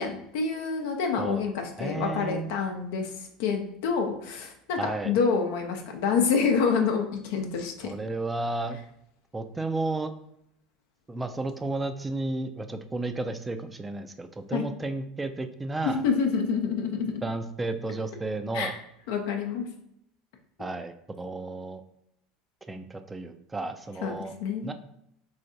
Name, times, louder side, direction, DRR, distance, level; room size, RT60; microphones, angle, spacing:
voice 1, 0.0-3.1 3.4-7.9 14.5-14.7 15.8-17.1 18.5-18.7 19.1-19.7 24.0-24.7, left 5 dB, 70° left, 4 dB, 0.7 m, -27 dB
voice 2, 1.8-2.5 4.8-5.1 7.8-8.8 9.3-10.1 11.1-16.0 17.2-18.7 20.6-21.8 22.7-24.3 24.6-24.7, right 2 dB, 15° right, 8 dB, 0.4 m, -32 dB
3.7 x 3.2 x 2.7 m, 0.75 s
hypercardioid pair, 85°, 0 cm